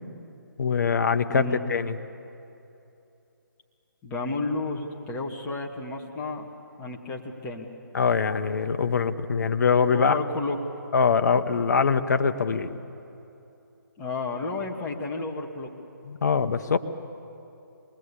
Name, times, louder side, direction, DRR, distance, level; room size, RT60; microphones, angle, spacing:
voice 1, 0.6-2.0 7.9-10.2 10.9-12.7 16.0-16.8, left 5 dB, 55° left, 9 dB, 1.2 m, -23 dB
voice 2, 1.3-1.6 4.0-6.5 6.8-7.7 9.9-10.6 14.0-15.7, left 3 dB, 15° left, 0 dB, 1.9 m, -32 dB
23.0 x 20.5 x 8.5 m, 2.8 s
figure-of-eight pair, 150°, 11 cm